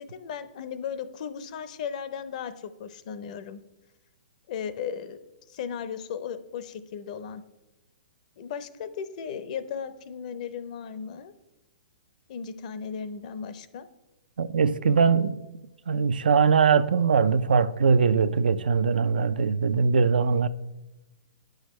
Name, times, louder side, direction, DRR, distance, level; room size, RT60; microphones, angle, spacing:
voice 1, 0.0-3.6 4.5-5.2 5.5-7.4 8.4-11.3 12.3-13.9, left 7 dB, 55° left, 0.6 m, -36 dB
voice 2, 14.4-15.4 15.9-20.5, right 5 dB, 85° right, 0.4 m, -21 dB
9.3 x 6.4 x 3.1 m
hypercardioid pair, 135°, 5 cm